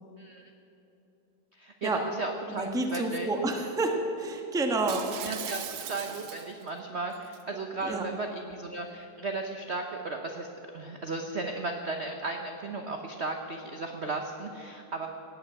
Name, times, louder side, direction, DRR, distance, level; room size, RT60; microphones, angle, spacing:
voice 1, 0.2-0.5 1.5-3.3 5.2-10.5 10.7-15.1, right 3 dB, 50° right, 4 dB, 0.8 m, -35 dB
voice 2, 2.5-5.5 7.8-8.1, right 2 dB, 5° right, 3 dB, 0.8 m, -30 dB
Shatter, 4.9-6.7 7.1-7.4, right 10 dB, 85° right, 1.7 m, -39 dB
17.0 x 8.6 x 8.2 m, 2.9 s
omnidirectional pair, 2.3 m